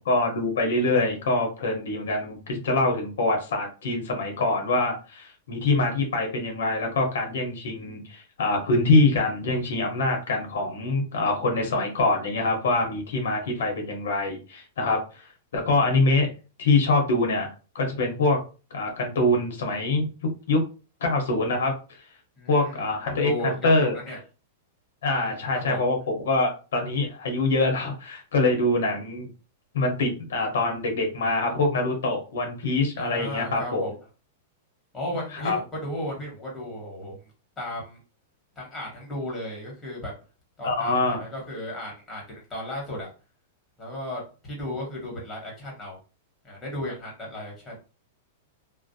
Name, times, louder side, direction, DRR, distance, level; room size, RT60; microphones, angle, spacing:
voice 1, 0.1-16.3 16.6-17.5 17.7-18.4 18.7-20.6 21.0-21.7 22.5-24.0 25.0-29.3 29.7-33.8 35.3-35.6 40.6-41.3, left 2 dB, 80° left, 3 dB, 0.8 m, -24 dB
voice 2, 22.4-24.2 25.1-25.8 33.0-33.9 34.9-37.2 37.6-38.0 38.6-40.1 40.6-43.1 43.8-46.0 46.4-47.7, left 1 dB, 10° left, -2 dB, 1.1 m, -35 dB
2.4 x 2.0 x 2.6 m, 0.34 s
supercardioid pair, 155°, 0 cm